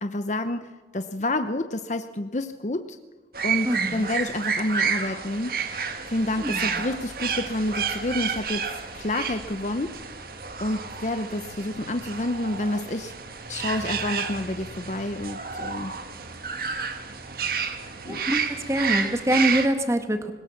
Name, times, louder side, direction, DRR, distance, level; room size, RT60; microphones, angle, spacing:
voice 1, 0.0-3.0 3.4-5.6 6.1-8.7 8.9-9.9 10.6-13.1 13.5-15.9 18.0-18.2, left 1 dB, 40° left, 9 dB, 0.8 m, -29 dB
sound 1, 3.3-19.7, right 6 dB, 55° right, 1.7 m, -30 dB
voice 2, 3.6-4.1 6.4-6.8 18.0-20.3, right 1 dB, 15° right, 7 dB, 1.6 m, -25 dB
21.5 x 19.0 x 7.2 m, 1.3 s
head